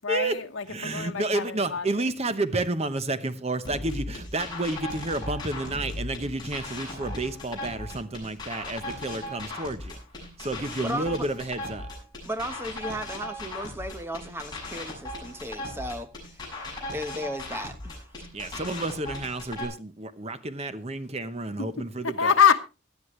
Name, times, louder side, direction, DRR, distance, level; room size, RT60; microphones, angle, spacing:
voice 1, 0.0-1.9 22.0-22.6, left 7 dB, 85° left, 1.1 m, -24 dB
voice 2, 0.7-10.0 10.4-11.9 18.3-22.3, right 2 dB, 30° right, 0.9 m, -30 dB
sound 1, 3.6-19.6, left 1 dB, 20° left, 6.4 m, -37 dB
voice 3, 10.5-11.3 12.2-16.6 16.9-18.0, equal, 10° right, 1.1 m, -35 dB
18.0 x 11.5 x 3.1 m
head